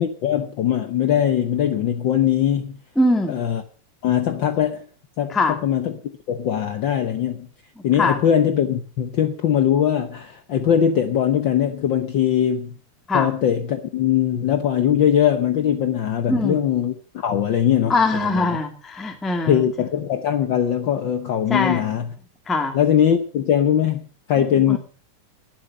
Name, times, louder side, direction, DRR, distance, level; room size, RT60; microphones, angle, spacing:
voice 1, 0.0-2.8 3.3-3.6 4.0-4.9 5.2-5.9 6.3-7.5 7.8-12.8 13.1-18.6 19.5-22.1 22.7-24.8, left 9 dB, 75° left, 7 dB, 1.1 m, -21 dB
voice 2, 2.9-3.4 5.3-5.6 8.0-8.2 13.1-13.3 16.3-16.6 17.9-19.6 21.5-21.8 22.5-22.8 24.7-24.8, left 2 dB, ahead, 4 dB, 1.6 m, -22 dB
19.5 x 7.7 x 6.6 m, 0.41 s
omnidirectional pair, 3.5 m